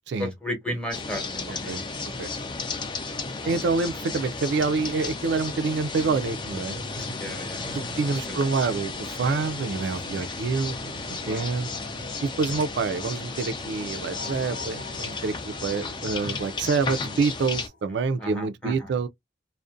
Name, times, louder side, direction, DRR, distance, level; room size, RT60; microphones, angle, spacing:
voice 1, 0.2-1.7 3.4-3.5 6.0-6.1 7.2-8.5 11.3-11.4 11.9-12.0 18.2-18.9, equal, 5° left, 0.9 m, -35 dB
sound 1, 0.9-17.7, left 4 dB, 25° left, 0.4 m, -34 dB
voice 2, 3.4-7.1 8.0-11.7 12.2-19.1, right 4 dB, 70° right, 0.3 m, -27 dB
sound 2, 6.0-17.9, left 1 dB, 50° left, 0.9 m, -46 dB
2.5 x 2.1 x 2.3 m
head